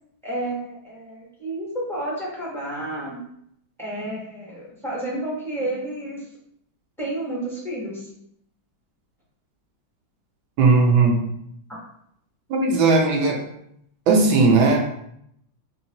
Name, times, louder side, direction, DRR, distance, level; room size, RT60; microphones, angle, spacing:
voice 1, 0.2-3.2 3.8-6.2 7.0-8.1, right 1 dB, ahead, -6 dB, 0.8 m, -30 dB
voice 2, 10.6-11.2 12.5-13.4 14.1-14.8, right 3 dB, 85° right, 1 dB, 1.5 m, -17 dB
4.1 x 3.0 x 2.8 m, 0.74 s
omnidirectional pair, 2.1 m